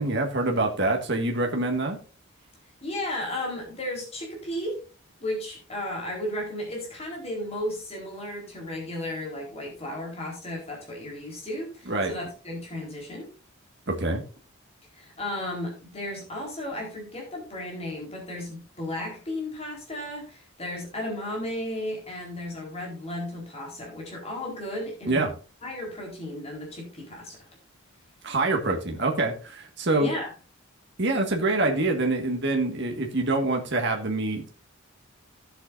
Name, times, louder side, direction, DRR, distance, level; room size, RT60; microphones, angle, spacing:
voice 1, 0.0-2.0 11.9-12.1 13.9-14.2 25.1-25.3 28.2-30.1 31.0-34.5, right 2 dB, 55° right, 2 dB, 1.8 m, -25 dB
voice 2, 2.8-4.8 5.2-13.3 15.0-25.3 25.6-27.4 30.0-30.3, left 1 dB, 30° left, 0 dB, 4.1 m, -34 dB
15.5 x 7.8 x 2.6 m, 0.33 s
head